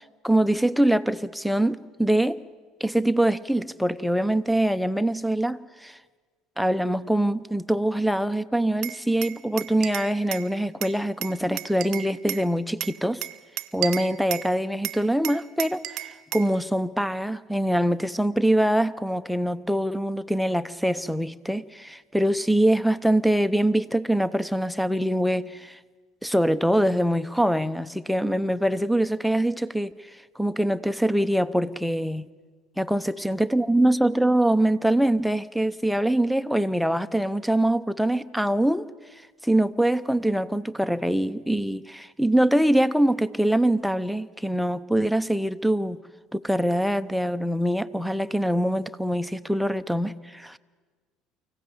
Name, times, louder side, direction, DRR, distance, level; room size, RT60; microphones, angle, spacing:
voice 1, 0.0-2.4 2.8-6.0 6.6-13.3 13.7-25.8 26.2-29.9 30.4-32.3 32.8-38.9 39.4-46.0 46.3-50.6, right 1 dB, ahead, 0.8 m, -24 dB
Glass, 8.8-10.5 10.8-12.5 12.8-14.5 14.8-16.5, right 15 dB, 60° right, 0.8 m, -33 dB
24.5 x 15.5 x 8.1 m
hypercardioid pair, 65°, 0 cm